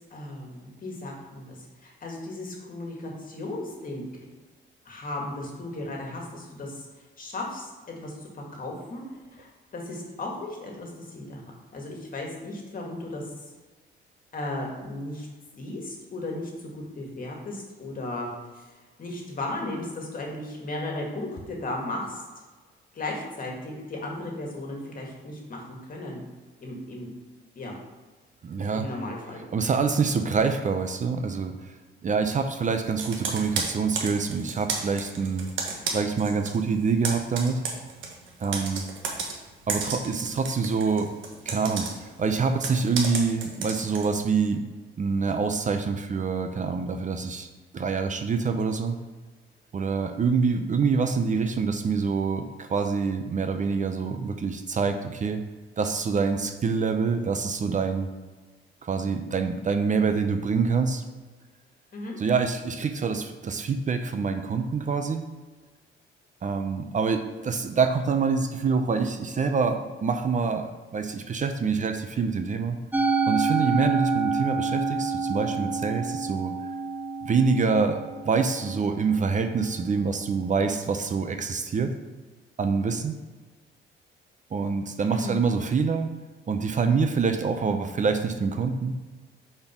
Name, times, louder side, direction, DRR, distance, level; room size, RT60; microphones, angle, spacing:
voice 1, 0.1-4.0 4.9-6.9 7.2-9.0 9.3-13.5 14.3-15.3 15.6-18.7 19.0-22.2 22.9-26.2 26.6-27.1 27.6-27.7 28.7-29.5 61.9-62.2 85.1-85.4, left 2 dB, 45° left, 0 dB, 2.0 m, -35 dB
voice 2, 28.4-28.9 29.5-31.8 32.0-35.5 35.9-37.6 38.4-38.9 39.7-41.1 41.5-44.6 45.0-47.5 47.7-49.0 49.7-55.4 55.8-58.1 58.8-61.0 62.2-65.2 66.4-72.8 73.3-76.5 77.2-78.0 78.2-81.9 82.6-83.2 84.5-86.1 86.5-89.0, right 5 dB, 40° right, 6 dB, 0.6 m, -26 dB
Computer keyboard, 33.0-36.6 36.9-44.1, right 4 dB, 75° right, 1.2 m, -33 dB
Musical instrument, 72.9-79.3, right 4 dB, 10° right, 0.8 m, -28 dB
5.2 x 4.4 x 5.9 m, 1.3 s
cardioid pair, 90°, 20 cm